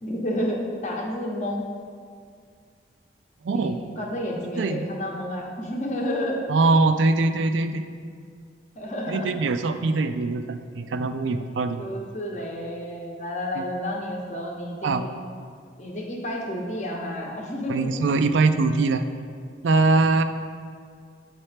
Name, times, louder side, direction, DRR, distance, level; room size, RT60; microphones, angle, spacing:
voice 1, 0.0-1.6 3.5-6.4 8.8-9.3 11.8-15.1 15.8-17.9, left 1 dB, 40° left, -1 dB, 0.8 m, -30 dB
voice 2, 3.4-3.8 4.6-4.9 6.5-7.8 9.1-11.8 13.6-13.7 14.8-15.0 17.7-19.0 19.6-20.2, right 3 dB, 85° right, 9 dB, 0.4 m, -22 dB
8.0 x 4.3 x 3.3 m, 2.1 s
head